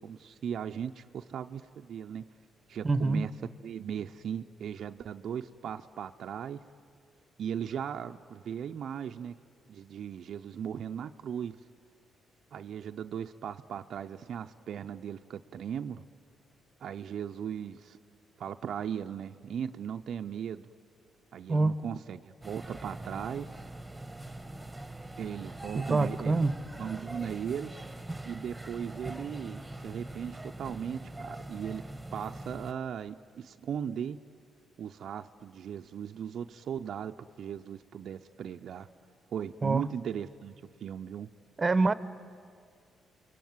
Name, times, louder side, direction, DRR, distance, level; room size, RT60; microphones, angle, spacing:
voice 1, 0.0-2.3 2.7-6.6 7.4-9.4 9.7-11.6 12.5-16.0 16.8-18.0 18.4-20.7 21.3-23.5 25.2-27.8 28.2-31.9 32.1-34.2 34.8-38.9 39.3-40.5 40.8-41.3, right 8 dB, 65° right, 6 dB, 0.6 m, -38 dB
voice 2, 2.8-3.2 21.5-21.8 25.8-26.6 39.6-39.8 41.6-41.9, right 3 dB, 30° right, 15 dB, 0.9 m, -25 dB
sound 1, 22.4-32.7, right 2 dB, 5° right, 1.5 m, -43 dB
28.0 x 22.0 x 9.5 m, 2.1 s
cardioid pair, 90°, 0 cm